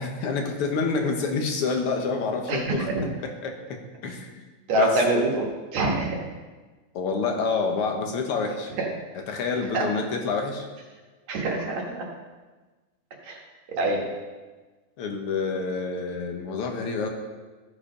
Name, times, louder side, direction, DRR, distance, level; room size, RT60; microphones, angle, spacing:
voice 1, 0.0-2.9 3.2-4.3 4.8-5.2 6.9-8.7 9.3-10.7 15.0-17.1, left 4 dB, 60° left, 3 dB, 1.8 m, -28 dB
voice 2, 2.5-3.0 4.7-5.5 5.7-6.2 8.8-8.9 9.7-9.8 11.3-12.0 13.2-13.4 13.8-14.1, right 2 dB, 70° right, -1 dB, 2.8 m, -25 dB
14.5 x 4.9 x 5.2 m, 1.3 s
omnidirectional pair, 3.3 m